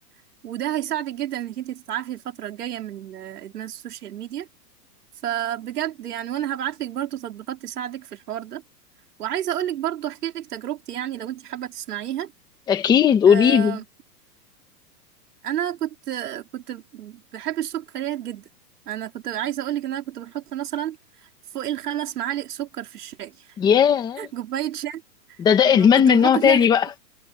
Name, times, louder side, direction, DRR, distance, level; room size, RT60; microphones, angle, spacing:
voice 1, 0.4-4.5 5.2-8.6 9.2-12.3 13.3-13.8 15.4-18.4 18.9-21.0 21.5-23.5 24.2-25.0 25.6-26.7, right 11 dB, 65° right, 3.6 m, -30 dB
voice 2, 12.7-13.8 23.6-24.3 25.4-26.9, left 8 dB, 10° left, 1.3 m, -17 dB
hypercardioid pair, 175°, 49 cm